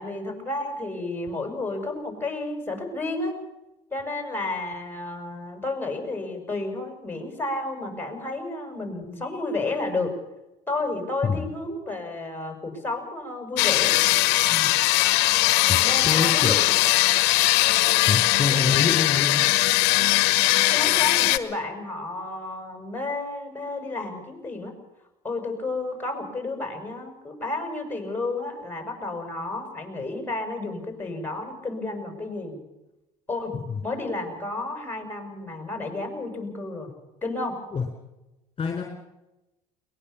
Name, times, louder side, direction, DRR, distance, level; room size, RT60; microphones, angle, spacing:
voice 1, 0.0-3.4 3.9-10.1 10.7-14.0 14.5-14.7 15.8-16.8 20.4-24.7 25.2-32.6 33.3-33.5 33.8-36.9 37.2-37.6, left 2 dB, 10° left, 5 dB, 7.3 m, -31 dB
sound 1, 13.6-21.4, left 19 dB, 65° left, 1.3 m, -20 dB
voice 2, 15.7-16.6 18.1-19.4 33.7-33.8 37.7-37.8 38.6-38.8, left 5 dB, 30° left, 3 dB, 4.1 m, -26 dB
22.0 x 20.0 x 7.2 m, 0.97 s
hypercardioid pair, 75°, 19 cm